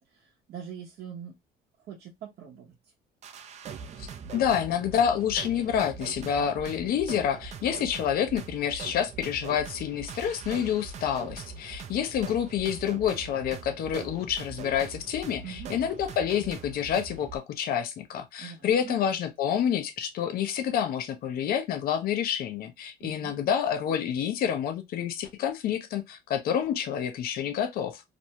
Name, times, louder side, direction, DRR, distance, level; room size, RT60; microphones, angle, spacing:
voice 1, 0.0-1.4 1.8-2.7 15.4-15.7 18.4-19.0 23.0-23.3, right 8 dB, 70° right, 0.8 m, -43 dB
sound 1, 3.2-17.4, right 5 dB, 40° right, 0.4 m, -42 dB
voice 2, 4.0-28.0, left 9 dB, 65° left, 0.6 m, -28 dB
2.5 x 2.1 x 2.8 m
cardioid pair, 110°, 17 cm